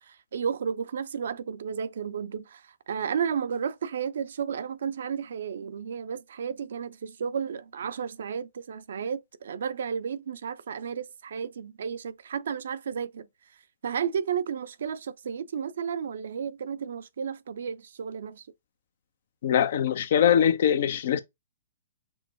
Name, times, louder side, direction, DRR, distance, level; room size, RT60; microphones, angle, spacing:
voice 1, 0.0-13.3 13.8-18.5, right 7 dB, 60° right, 0.5 m, -33 dB
voice 2, 19.4-21.2, left 9 dB, 55° left, 0.5 m, -22 dB
6.2 x 2.1 x 2.7 m
figure-of-eight pair, 115°, 0 cm